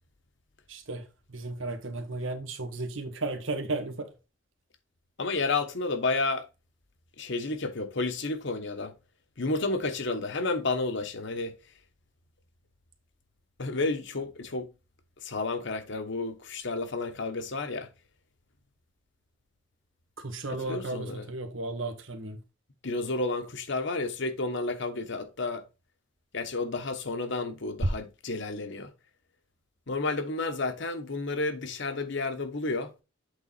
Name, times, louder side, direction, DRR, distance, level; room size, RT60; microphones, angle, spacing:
voice 1, 0.7-4.1 20.2-22.4, right 2 dB, 80° right, 1.4 m, -34 dB
voice 2, 5.2-6.5 7.2-8.9 9.4-11.5 13.6-14.7 15.2-17.9 20.6-21.3 22.8-25.6 26.3-28.9 29.9-32.9, left 3 dB, 65° left, 1.1 m, -31 dB
8.1 x 3.8 x 4.1 m
head